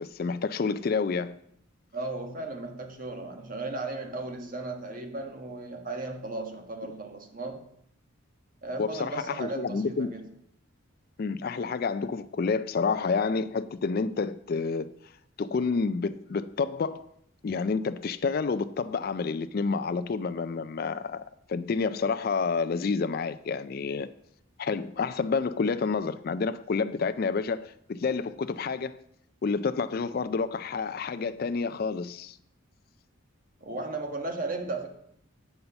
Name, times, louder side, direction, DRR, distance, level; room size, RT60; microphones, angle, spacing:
voice 1, 0.0-1.4 8.8-10.1 11.2-14.9 15.4-17.1 17.4-21.2 21.5-24.1 24.6-29.0 29.4-32.4, left 4 dB, 45° left, 0.3 m, -29 dB
voice 2, 1.9-7.6 8.6-10.3 33.6-34.9, right 2 dB, 40° right, 1.4 m, -35 dB
9.4 x 5.5 x 6.8 m
head